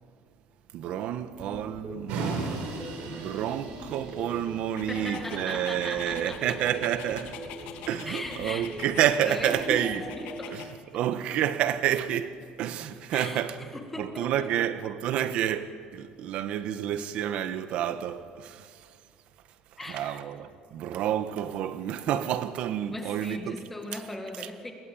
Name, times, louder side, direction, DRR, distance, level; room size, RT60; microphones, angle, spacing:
voice 1, 0.7-2.7 3.0-7.4 7.9-10.0 10.4-13.6 14.0-19.0 19.7-23.6 23.9-24.0 24.4-24.7, right 10 dB, 55° right, 1.5 m, -29 dB
sound 1, 1.3-10.3, right 1 dB, 20° right, 7.2 m, -42 dB
sound 2, 2.1-7.2, right 3 dB, 70° right, 6.7 m, -38 dB
Dog, 4.8-10.7, left 10 dB, 80° left, 2.8 m, -46 dB
voice 2, 4.9-6.6 8.1-8.7 9.2-10.6 13.1-13.4 13.7-14.5 19.8-20.2 22.9-24.7, left 2 dB, 10° left, 2.0 m, -38 dB
29.5 x 22.0 x 8.8 m
cardioid pair, 175°, 2 cm